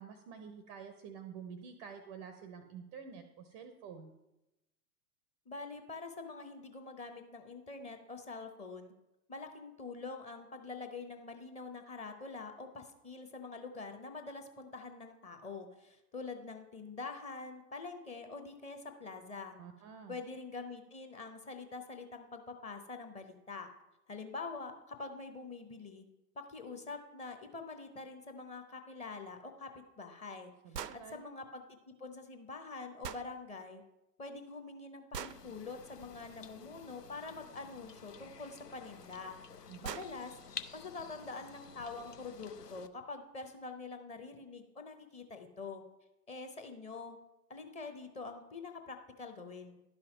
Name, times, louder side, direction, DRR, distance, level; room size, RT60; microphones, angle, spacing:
voice 1, 0.0-4.1 19.6-20.2 30.6-31.2 39.7-40.0, right 6 dB, 20° right, 8 dB, 0.5 m, -49 dB
voice 2, 5.5-8.9 9.3-19.6 20.1-23.7 24.1-26.0 26.4-29.7 30.0-30.5 30.9-33.8 34.2-40.3 40.7-45.8 46.3-47.2 47.5-49.8, left 4 dB, 15° left, 6 dB, 0.7 m, -45 dB
sound 1, 30.7-31.0 33.0-33.3 35.1-35.4 37.7-37.8 39.1-39.2 39.5-39.6 39.8-40.1, right 8 dB, 85° right, 0.5 m, -41 dB
sound 2, 35.3-42.9, left 6 dB, 90° left, 0.6 m, -51 dB
11.5 x 5.7 x 5.3 m, 0.94 s
figure-of-eight pair, 100°, 47 cm